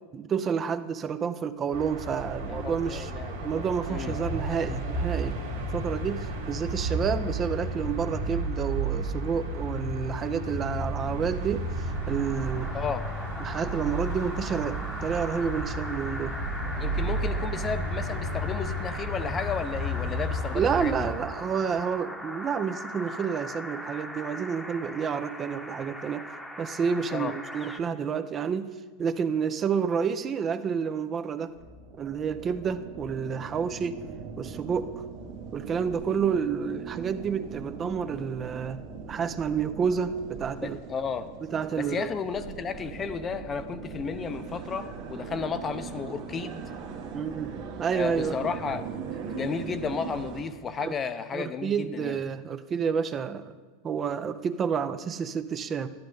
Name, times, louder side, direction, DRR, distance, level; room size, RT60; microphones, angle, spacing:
voice 1, 0.1-3.1 3.4-12.7 13.4-16.4 20.5-26.3 26.6-28.7 29.0-31.5 32.0-34.0 34.4-35.0 35.5-38.8 39.1-40.8 41.5-42.1 47.1-48.5 50.8-50.9 51.3-53.6 53.8-55.9, right 6 dB, 30° right, 11 dB, 0.5 m, -29 dB
sound 1, 1.7-21.1, right 1 dB, 90° right, 1.8 m, -32 dB
voice 2, 2.5-4.2 12.7-13.0 16.8-21.1 27.1-27.3 40.6-41.3 41.8-46.6 47.9-52.2, left 5 dB, 30° left, 11 dB, 0.6 m, -33 dB
sound 2, 11.5-27.8, equal, 5° left, 0.9 m, -40 dB
sound 3, 31.5-50.4, right 5 dB, 60° right, 1.5 m, -40 dB
11.5 x 10.5 x 3.9 m, 1.4 s
hypercardioid pair, 95°, 0 cm